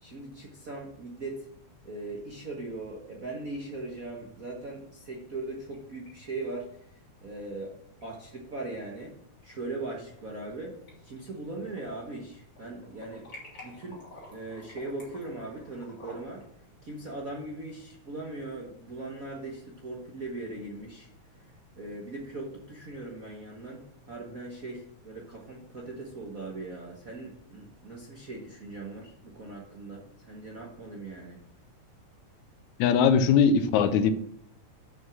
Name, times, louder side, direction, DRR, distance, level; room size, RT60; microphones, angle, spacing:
voice 1, 0.0-1.5 1.8-7.7 8.0-9.1 9.4-10.8 11.0-13.3 13.6-14.0 14.3-16.4 16.8-21.1 21.8-31.4, right 2 dB, 50° right, -2 dB, 1.0 m, -39 dB
sound 1, 5.7-6.1 6.4-6.5 8.0-8.1 9.2-9.5 10.0-10.6 10.9-12.2 12.5-16.4, left 1 dB, 40° left, 4.1 m, -50 dB
voice 2, 32.8-34.1, left 6 dB, 90° left, 11 dB, 2.1 m, -21 dB
7.4 x 6.1 x 6.0 m, 0.69 s
omnidirectional pair, 3.3 m